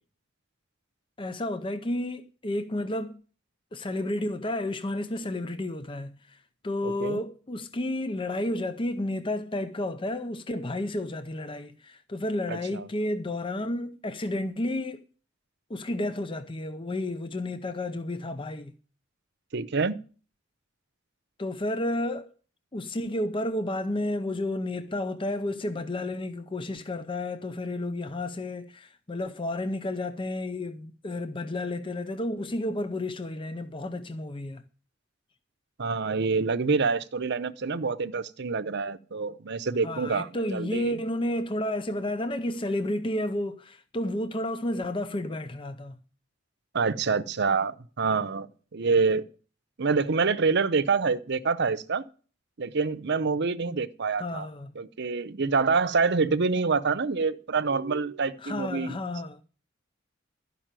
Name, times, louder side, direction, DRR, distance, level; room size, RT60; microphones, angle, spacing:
voice 1, 1.2-3.2 3.7-6.4 6.6-15.0 15.7-18.7 21.4-22.3 22.7-34.6 39.8-46.0 54.2-54.7 58.4-59.4, left 1 dB, 25° left, 0.6 m, -31 dB
voice 2, 6.8-7.2 12.5-12.8 19.5-20.0 35.8-41.0 46.7-49.2 49.8-52.0 52.6-54.5 54.8-59.0, right 4 dB, 60° right, 0.7 m, -26 dB
12.5 x 5.5 x 8.9 m
head